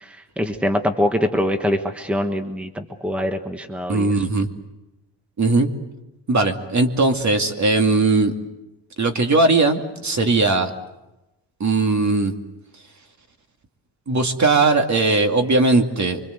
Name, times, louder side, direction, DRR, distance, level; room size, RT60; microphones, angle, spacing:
voice 1, 0.4-4.1, left 1 dB, 5° right, 6 dB, 1.4 m, -23 dB
voice 2, 3.9-4.5 5.4-5.7 6.3-8.3 9.0-10.7 11.6-12.3 14.1-16.2, right 3 dB, 35° right, 5 dB, 2.5 m, -19 dB
25.5 x 24.5 x 8.0 m, 0.99 s
cardioid pair, 110°, 46 cm